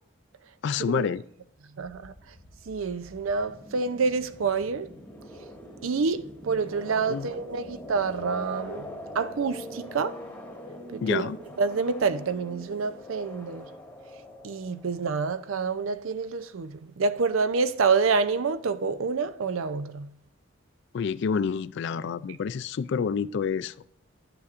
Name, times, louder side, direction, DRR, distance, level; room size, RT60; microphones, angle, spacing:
voice 1, 0.6-1.2 7.1-7.3 11.0-11.4 20.9-23.7, left 6 dB, 55° left, 0.3 m, -28 dB
sound 1, 1.8-15.2, left 1 dB, 10° left, 1.2 m, -43 dB
voice 2, 1.8-2.1 2.7-4.9 5.8-8.9 9.1-10.2 10.9-11.2 11.6-13.7 14.4-20.1, right 5 dB, 75° right, 0.5 m, -27 dB
11.0 x 6.9 x 2.5 m
head